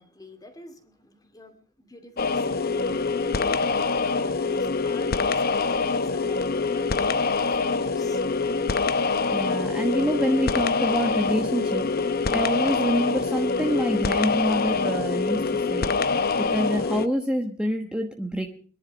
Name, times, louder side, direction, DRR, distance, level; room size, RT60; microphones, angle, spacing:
voice 1, 0.0-8.2, left 1 dB, 20° left, 7 dB, 2.4 m, -47 dB
sound 1, 2.2-17.1, left 4 dB, 50° left, 0.8 m, -25 dB
voice 2, 9.3-16.1 16.4-18.5, equal, 5° right, 3 dB, 1.2 m, -26 dB
25.5 x 10.5 x 5.2 m, 0.44 s
head